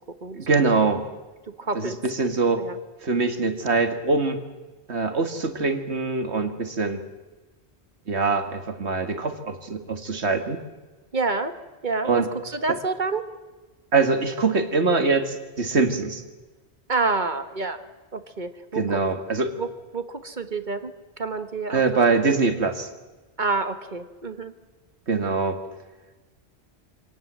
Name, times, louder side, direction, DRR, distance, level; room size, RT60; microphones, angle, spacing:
voice 1, 0.3-1.0 1.7-2.7 3.0-4.4 4.9-7.0 8.1-10.6 12.0-12.3 12.7-12.8 13.9-16.2 18.7-19.5 21.7-22.9 25.1-25.6, right 4 dB, 80° right, 7 dB, 2.3 m, -23 dB
voice 2, 1.6-2.0 2.6-2.8 11.1-11.5 11.8-13.2 16.9-17.8 18.1-19.2 19.6-19.7 19.9-20.9 21.2-21.8 22.3-22.4 23.4-24.5, right 3 dB, 45° right, 9 dB, 1.6 m, -28 dB
26.5 x 18.5 x 7.6 m, 1.2 s
omnidirectional pair, 1.1 m